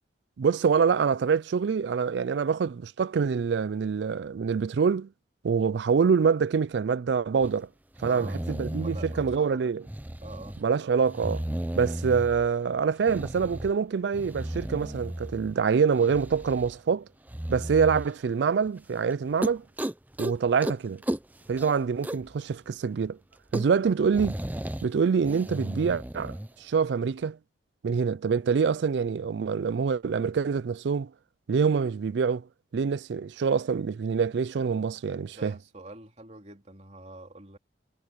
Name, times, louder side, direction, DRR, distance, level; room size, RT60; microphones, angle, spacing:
voice 1, 0.4-5.1 5.4-7.7 8.0-9.8 10.6-11.4 11.8-17.1 17.5-19.6 20.2-21.0 21.5-23.2 23.5-24.3 24.8-27.4 27.8-31.1 31.5-32.5 32.7-35.5, right 6 dB, 70° right, 0.4 m, -25 dB
sound 1, 7.4-7.5 8.0-9.4 9.8-10.6 11.0-12.5 13.0-13.8 14.1-15.5 15.9-16.8 17.3-18.1 18.7-18.8 19.1-19.2 19.4-20.3 20.6-20.8 21.0-22.4 22.7-22.8 23.0-23.1 23.3-24.9 25.2-26.5, right 1 dB, 10° right, 0.6 m, -34 dB
voice 2, 8.0-8.5 8.7-9.6 10.2-10.6 23.9-24.0 35.3-37.6, right 2 dB, 35° right, 3.3 m, -45 dB
head